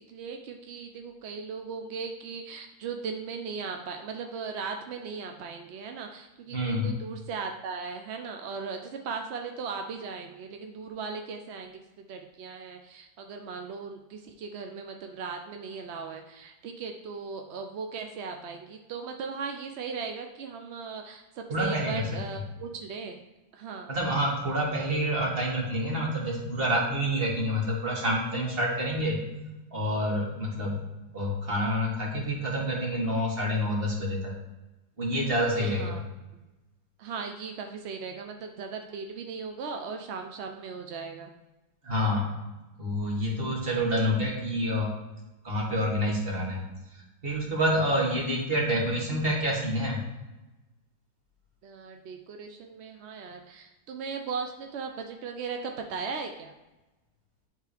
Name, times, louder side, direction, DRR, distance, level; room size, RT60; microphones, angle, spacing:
voice 1, 0.0-23.2 23.5-23.9 35.5-36.0 37.0-41.3 43.6-43.7 47.8-48.1 51.6-56.5, right 5 dB, 65° right, 4 dB, 0.6 m, -38 dB
voice 2, 6.5-6.9 21.5-22.2 23.9-29.2 29.7-30.8 31.1-34.3 35.0-36.0 41.8-42.3 42.8-44.9 45.4-46.6 47.2-50.0, equal, 35° right, -2 dB, 1.9 m, -28 dB
10.5 x 3.7 x 3.4 m, 1.1 s
omnidirectional pair, 1.7 m